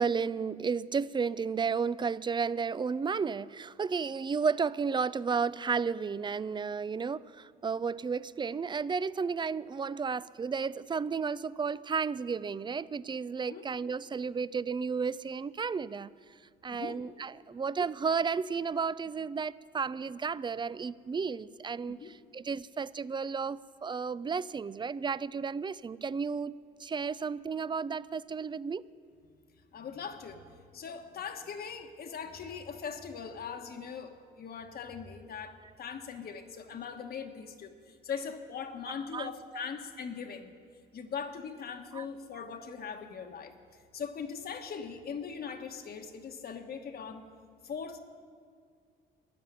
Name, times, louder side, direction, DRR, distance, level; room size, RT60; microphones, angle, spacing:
voice 1, 0.0-16.1 16.6-26.5 26.8-28.8 38.9-39.3 41.9-42.0, right 5 dB, 25° right, 19 dB, 0.4 m, -33 dB
voice 2, 29.7-40.5 40.9-43.5 43.9-47.3 47.6-48.0, left 6 dB, 55° left, 5 dB, 1.3 m, -40 dB
13.0 x 10.5 x 8.1 m, 2.1 s
supercardioid pair, 70°, 19 cm